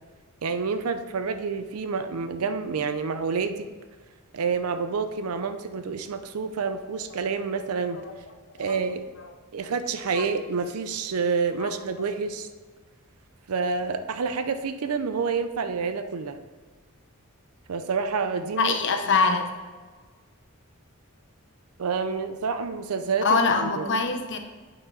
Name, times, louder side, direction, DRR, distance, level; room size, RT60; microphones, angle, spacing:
voice 1, 0.4-3.7 4.3-8.0 8.6-9.0 9.5-12.5 13.5-16.4 17.7-18.7 21.8-23.9, right 5 dB, 80° right, 9 dB, 0.5 m, -28 dB
voice 2, 18.6-19.5 23.2-24.4, left 4 dB, 55° left, 5 dB, 0.8 m, -24 dB
8.3 x 5.7 x 4.0 m, 1.4 s
head